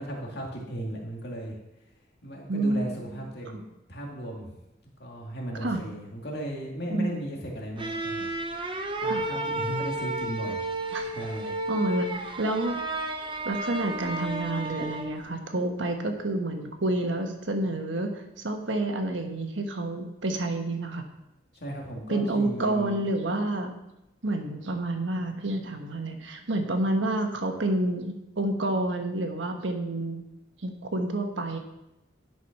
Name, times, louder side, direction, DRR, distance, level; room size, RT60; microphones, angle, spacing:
voice 1, 0.0-1.6 2.2-3.6 3.9-4.6 5.0-8.3 9.0-10.6 11.0-11.5 21.5-23.1, right 1 dB, 60° left, -1 dB, 2.2 m, -36 dB
voice 2, 2.5-2.9 3.5-3.6 5.6-5.8 6.9-7.2 9.0-9.2 10.9-11.1 11.7-12.8 13.4-21.0 22.1-23.8 24.2-30.2 30.6-31.6, right 2 dB, 80° right, 5 dB, 1.3 m, -29 dB
sound 1, 7.8-15.3, right 1 dB, 25° right, 0.8 m, -32 dB
11.0 x 5.9 x 5.9 m, 0.90 s
head